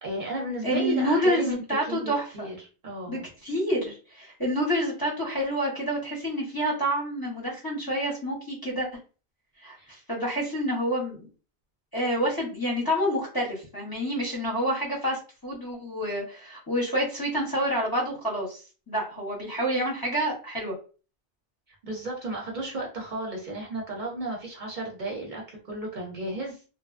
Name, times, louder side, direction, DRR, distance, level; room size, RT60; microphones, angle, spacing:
voice 1, 0.0-2.6 2.8-3.2 9.8-9.9 21.8-26.6, right 1 dB, 50° right, -1 dB, 0.7 m, -33 dB
voice 2, 0.6-2.5 3.1-8.9 9.6-11.3 11.9-20.8, equal, 25° left, -4 dB, 0.7 m, -28 dB
2.9 x 2.0 x 2.4 m, 0.35 s
omnidirectional pair, 1.1 m